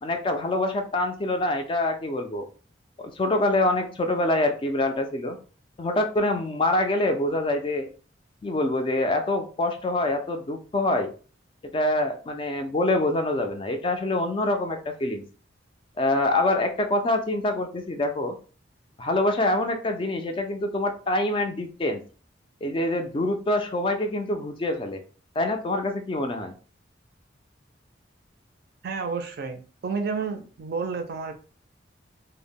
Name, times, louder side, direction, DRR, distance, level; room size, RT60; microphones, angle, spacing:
voice 1, 0.0-2.5 3.0-5.4 5.8-7.9 8.4-11.1 11.6-15.2 16.0-18.4 19.0-22.0 22.6-25.0 25.4-26.5, left 2 dB, 25° left, 5 dB, 0.3 m, -25 dB
voice 2, 28.8-31.3, right 5 dB, 55° right, 6 dB, 0.4 m, -30 dB
2.1 x 2.0 x 3.4 m, 0.38 s
head